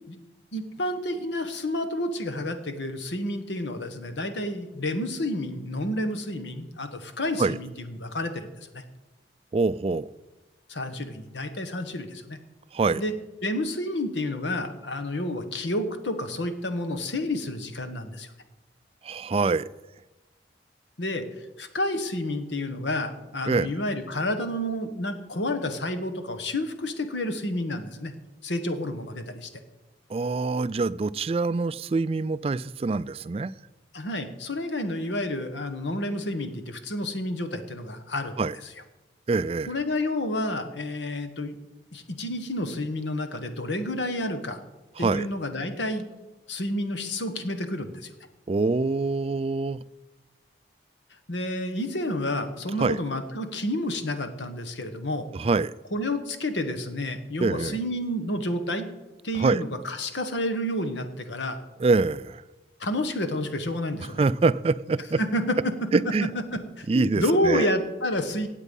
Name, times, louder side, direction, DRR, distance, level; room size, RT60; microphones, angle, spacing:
voice 1, 0.5-8.5 8.7-8.8 10.7-12.4 13.0-13.1 13.4-18.3 21.0-21.2 21.6-28.1 28.4-29.5 33.9-38.7 39.7-41.6 41.9-44.6 45.0-46.1 46.5-48.1 51.3-55.3 55.9-58.8 59.2-61.6 62.8-64.2 65.2-65.5 66.5-68.5, left 1 dB, 90° left, 1.4 m, -30 dB
voice 2, 9.5-10.1 12.7-13.0 19.0-19.7 23.5-23.7 30.1-33.5 38.4-38.6 39.3-39.7 45.0-45.3 48.5-49.8 52.8-53.0 55.3-55.7 57.4-57.8 59.3-59.6 61.8-62.4 64.2-65.2 65.9-66.3 66.9-67.7, right 3 dB, 35° right, 0.3 m, -25 dB
16.5 x 8.3 x 5.4 m
head